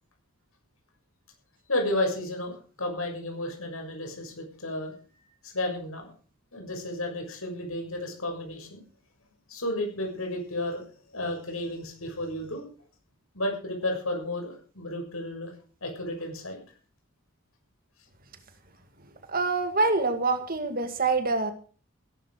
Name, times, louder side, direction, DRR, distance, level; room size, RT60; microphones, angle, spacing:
voice 1, 1.7-4.9 5.4-6.1 6.5-8.8 9.5-10.8 11.1-12.6 13.3-15.5 15.8-16.6, left 1 dB, 85° left, 3 dB, 6.6 m, -32 dB
voice 2, 19.3-21.5, right 3 dB, 45° right, 9 dB, 2.0 m, -25 dB
17.0 x 11.5 x 5.0 m, 0.39 s
head